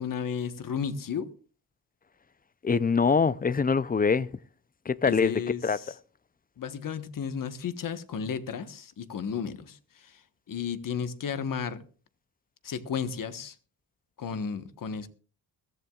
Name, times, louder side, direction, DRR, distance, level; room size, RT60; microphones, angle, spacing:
voice 1, 0.0-1.3 5.0-5.9 6.6-10.2 10.5-11.8 12.6-13.5 14.2-15.1, left 7 dB, 55° left, 1.3 m, -33 dB
voice 2, 2.6-4.3 4.9-5.8, left 5 dB, 25° left, 0.5 m, -24 dB
22.0 x 14.5 x 2.4 m
cardioid pair, 85°, 39 cm